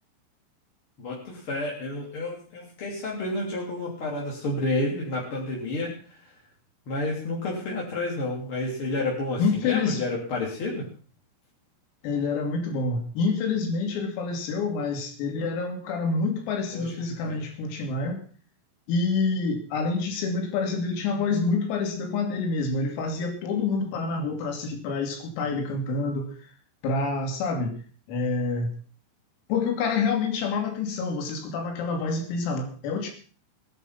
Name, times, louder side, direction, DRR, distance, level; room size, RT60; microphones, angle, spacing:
voice 1, 1.0-6.3 6.9-10.9 16.7-16.9 17.2-17.4, left 2 dB, 30° left, -3 dB, 3.1 m, -30 dB
voice 2, 9.4-10.0 12.0-18.2 18.9-26.3 26.8-27.8 28.1-28.7 29.5-33.1, left 4 dB, 90° left, 4 dB, 5.5 m, -27 dB
18.5 x 11.0 x 5.8 m, 0.40 s
omnidirectional pair, 5.9 m